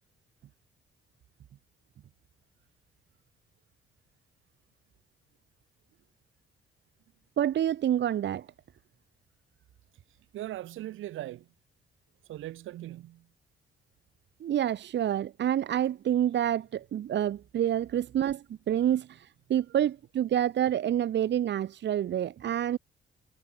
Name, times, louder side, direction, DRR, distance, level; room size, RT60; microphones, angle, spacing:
voice 1, 7.4-8.5 14.4-22.8, right 10 dB, 65° right, 1.4 m, -28 dB
voice 2, 10.3-11.5 12.3-13.3, right 14 dB, 85° right, 7.4 m, -39 dB
cardioid pair, 90°, 20 cm